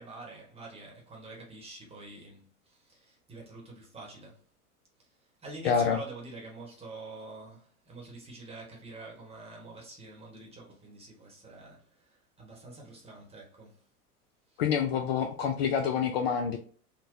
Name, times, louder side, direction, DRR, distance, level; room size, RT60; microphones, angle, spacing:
voice 1, 0.0-4.4 5.0-13.8 14.5-14.6, right 2 dB, 15° right, 1.1 m, -47 dB
voice 2, 5.6-6.0 14.6-16.6, left 7 dB, 45° left, 0.4 m, -27 dB
3.8 x 2.2 x 2.6 m
figure-of-eight pair, 95°, 45 cm